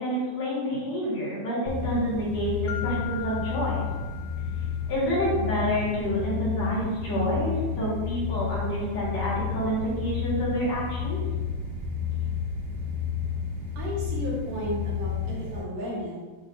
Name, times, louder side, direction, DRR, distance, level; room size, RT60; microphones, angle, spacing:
voice 1, 0.0-3.8 4.9-11.2, equal, 55° left, -8 dB, 3.1 m, -28 dB
sound 1, 1.7-15.6, left 7 dB, 60° right, 3.2 m, -31 dB
Mallet percussion, 2.7-5.2, left 12 dB, 80° left, 2.4 m, -40 dB
voice 2, 13.8-16.2, equal, 85° right, -6 dB, 3.6 m, -33 dB
11.0 x 3.9 x 2.8 m, 1.3 s
omnidirectional pair, 3.9 m